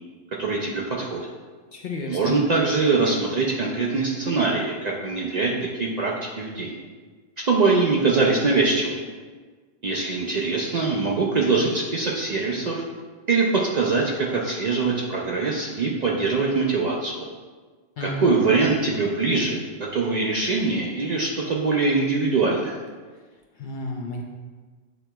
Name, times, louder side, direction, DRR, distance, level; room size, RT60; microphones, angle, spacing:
voice 1, 0.4-1.3 2.1-6.7 7.4-9.1 9.8-12.8 13.3-17.3 18.0-22.8, right 3 dB, 55° right, -3 dB, 0.5 m, -23 dB
voice 2, 1.7-2.4 18.0-18.4 23.6-24.2, left 2 dB, 60° left, 0 dB, 0.6 m, -32 dB
7.8 x 2.9 x 2.2 m, 1.4 s
omnidirectional pair, 1.1 m